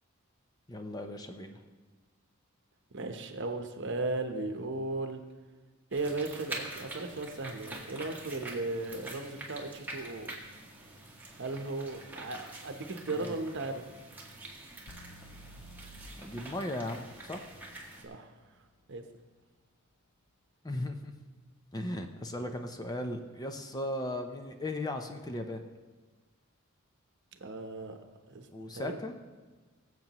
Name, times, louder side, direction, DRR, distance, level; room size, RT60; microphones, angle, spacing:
voice 1, 0.7-1.6 13.2-13.4 16.2-17.5 20.6-21.1 21.7-25.6 28.5-29.1, left 1 dB, 20° left, 5 dB, 0.6 m, -37 dB
voice 2, 2.9-5.2 5.9-10.3 11.4-13.8 18.0-18.3 18.9-19.0 27.3-28.0 28.3-28.5 28.7-29.0, right 2 dB, 60° right, 6 dB, 0.9 m, -36 dB
sound 1, 5.9-18.0, right 2 dB, 10° right, 1.7 m, -46 dB
sound 2, 14.9-18.8, equal, 85° left, 0.8 m, -53 dB
22.0 x 7.6 x 3.0 m, 1.3 s
head